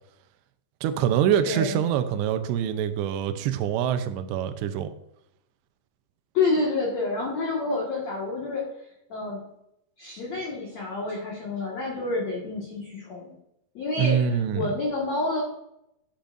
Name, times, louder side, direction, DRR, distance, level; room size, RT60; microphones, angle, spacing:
voice 1, 0.8-4.9 14.0-14.7, right 9 dB, 85° right, 9 dB, 2.9 m, -25 dB
voice 2, 1.4-1.8 6.3-8.6 9.1-9.4 10.0-13.3 13.7-15.4, left 3 dB, 50° left, -4 dB, 2.4 m, -28 dB
13.0 x 8.7 x 2.6 m, 0.80 s
omnidirectional pair, 4.9 m